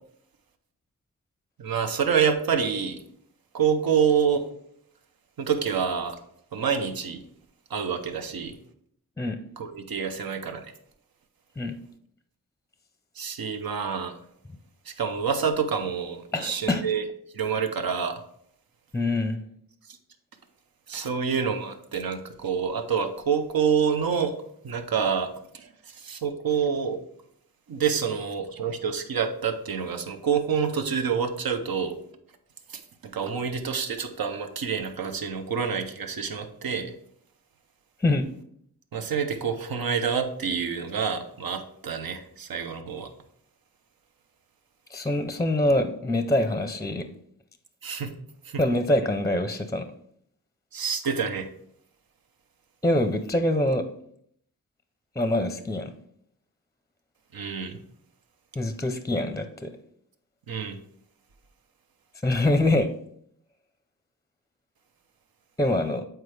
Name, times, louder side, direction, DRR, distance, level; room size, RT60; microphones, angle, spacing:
voice 1, 1.6-3.0 3.5-4.5 5.4-6.2 6.5-7.2 7.7-8.6 9.6-10.7 13.2-14.2 14.9-17.0 17.3-18.2 20.9-24.4 24.6-25.3 25.5-27.0 27.7-31.9 32.7-36.9 38.9-43.1 47.8-48.2 48.4-48.6 50.7-51.5 57.3-57.8 60.5-60.8, right 6 dB, 80° right, 7 dB, 0.8 m, -27 dB
voice 2, 16.3-16.8 18.9-19.4 38.0-38.3 44.9-47.1 48.6-49.8 52.8-53.8 55.2-55.9 58.5-59.7 62.2-62.9 65.6-66.0, left 1 dB, 10° left, 8 dB, 0.5 m, -24 dB
8.0 x 4.5 x 3.3 m, 0.69 s
wide cardioid pair, 75°, 35 cm